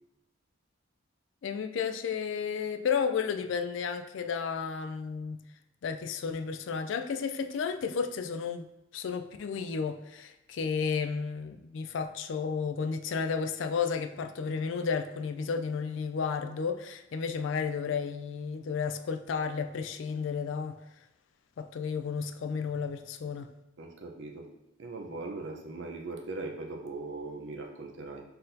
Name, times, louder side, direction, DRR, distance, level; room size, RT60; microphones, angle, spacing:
voice 1, 1.4-5.4 5.8-8.7 8.9-20.8 21.6-23.5, left 6 dB, 70° left, 7 dB, 0.3 m, -32 dB
voice 2, 23.8-24.5 24.8-28.2, right 3 dB, 65° right, 1 dB, 0.6 m, -39 dB
4.2 x 3.8 x 2.6 m, 0.91 s
head